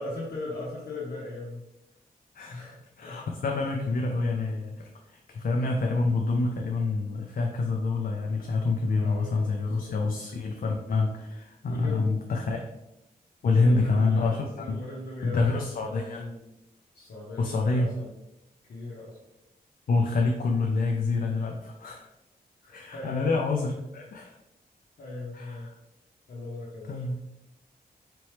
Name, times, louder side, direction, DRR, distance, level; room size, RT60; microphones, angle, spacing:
voice 1, 0.0-1.6 2.5-3.6 8.8-9.9 11.7-12.1 13.6-16.4 16.9-18.1 18.7-19.2 22.6-23.4 25.0-25.7 26.3-27.0, left 2 dB, 85° left, -6 dB, 0.9 m, -38 dB
voice 2, 2.3-2.7 3.0-12.7 13.4-14.8 15.2-16.2 17.4-17.9 19.9-22.1 22.7-24.4 25.3-25.7 26.9-27.2, left 3 dB, 60° left, 1 dB, 0.5 m, -27 dB
4.1 x 3.0 x 3.2 m, 0.91 s
cardioid pair, 65°, 16 cm